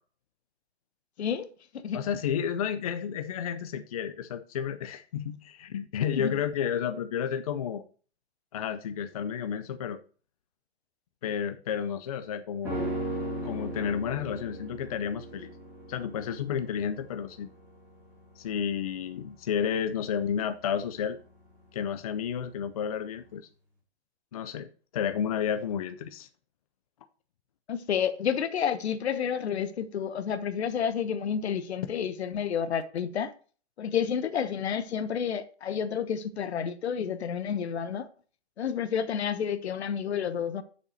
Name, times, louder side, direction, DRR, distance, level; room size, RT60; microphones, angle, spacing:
voice 1, 1.9-7.8 8.5-10.0 11.2-12.9 13.4-15.5 15.9-17.5 18.4-21.2 21.7-23.5 24.3-26.3, left 8 dB, 35° left, 0.5 m, -31 dB
sound 1, 12.6-22.0 22.3-22.4, right 1 dB, 10° right, 2.9 m, -38 dB
voice 2, 27.7-33.3 33.8-38.1 38.6-40.6, left 8 dB, 75° left, 1.1 m, -30 dB
6.9 x 5.6 x 6.3 m
hypercardioid pair, 165°, 33 cm